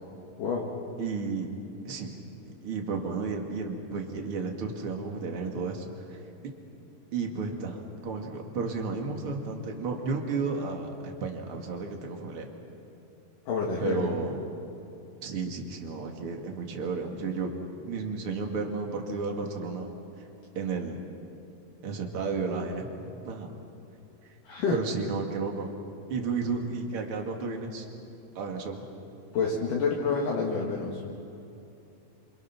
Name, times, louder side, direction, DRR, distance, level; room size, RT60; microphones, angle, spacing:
voice 1, 0.4-0.7 13.5-14.1 24.4-24.8 29.3-31.0, left 5 dB, 55° left, -1 dB, 3.1 m, -28 dB
voice 2, 1.0-1.5 1.8-2.2 2.5-6.5 7.1-12.5 13.8-14.4 15.2-17.5 17.8-19.9 20.5-21.0 21.8-22.9 23.2-23.6 24.7-25.7 26.1-27.9 28.3-28.9, right 4 dB, 40° right, 2 dB, 2.3 m, -33 dB
28.0 x 27.0 x 6.1 m, 2.8 s
omnidirectional pair, 5.1 m